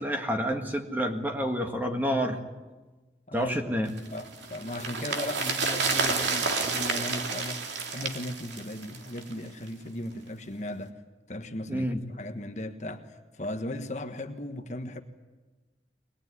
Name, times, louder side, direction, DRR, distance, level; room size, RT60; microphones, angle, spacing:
voice 1, 0.0-2.4 3.3-3.9 11.7-12.0, equal, 10° right, 4 dB, 1.8 m, -28 dB
voice 2, 3.3-3.6 4.0-10.9 11.3-11.9 12.2-15.0, left 1 dB, 40° left, 6 dB, 1.4 m, -37 dB
sound 1, 4.0-9.4 9.7-9.8, right 4 dB, 90° right, 2.9 m, -30 dB
22.5 x 20.5 x 9.6 m, 1.2 s
head